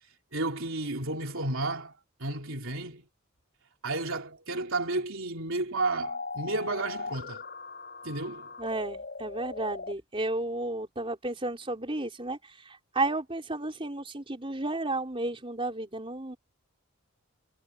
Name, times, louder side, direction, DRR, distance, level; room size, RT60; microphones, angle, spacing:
voice 1, 0.3-1.9 2.2-3.1 3.8-7.4 8.0-8.5, right 2 dB, 65° right, 3.7 m, -32 dB
sound 1, 6.0-9.9, left 4 dB, 45° left, 7.6 m, -39 dB
voice 2, 8.6-16.4, right 2 dB, 25° right, 4.2 m, -33 dB
head